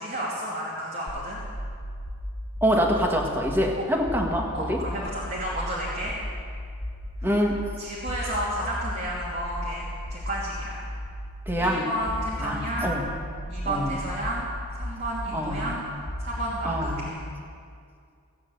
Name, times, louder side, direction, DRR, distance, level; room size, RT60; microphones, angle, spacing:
voice 1, 0.0-1.4 3.8-3.9 4.5-6.1 7.2-7.3 7.8-10.8 11.6-13.0 13.5-15.8 16.2-17.2, right 1 dB, 45° right, -7 dB, 2.9 m, -32 dB
sound 1, 1.1-17.1, equal, 30° left, 1.7 m, -36 dB
voice 2, 2.6-4.8 7.2-7.6 11.5-11.9 12.4-13.0 13.7-14.0 15.3-15.7 16.6-17.0, equal, 10° right, 1 dB, 1.5 m, -25 dB
16.5 x 9.5 x 7.9 m, 2.2 s
head